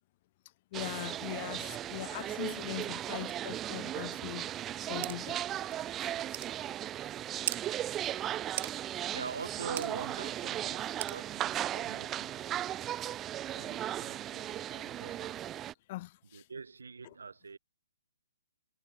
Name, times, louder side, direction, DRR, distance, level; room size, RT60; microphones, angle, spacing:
voice 1, 0.7-4.5 4.9-5.4 15.9-16.5 17.0-17.1, left 17 dB, 40° left, 2.8 m, -41 dB
sound 1, 0.7-15.7, right 12 dB, 20° right, 2.1 m, -37 dB
sound 2, 5.0-5.2 5.7-5.8 6.3-6.5 7.5-7.6 8.6-8.7 9.8-9.9 11.0-11.2, right 14 dB, 45° right, 1.1 m, -36 dB
voice 2, 9.1-12.5 13.5-15.4 16.3-17.6, right 5 dB, 85° right, 7.9 m, -44 dB
hypercardioid pair, 145°, 0 cm